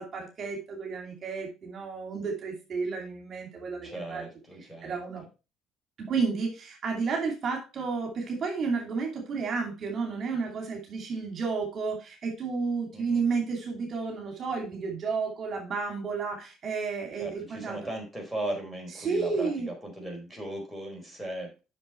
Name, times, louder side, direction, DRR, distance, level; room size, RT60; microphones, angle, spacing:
voice 1, 0.0-4.2 4.8-5.2 6.0-17.8 19.0-19.7, right 4 dB, 45° right, 2 dB, 2.8 m, -31 dB
voice 2, 3.8-4.9 12.9-13.2 17.2-21.6, right 1 dB, 5° left, 1 dB, 4.2 m, -37 dB
7.7 x 6.3 x 4.5 m, 0.30 s
cardioid pair, 100°, 0 cm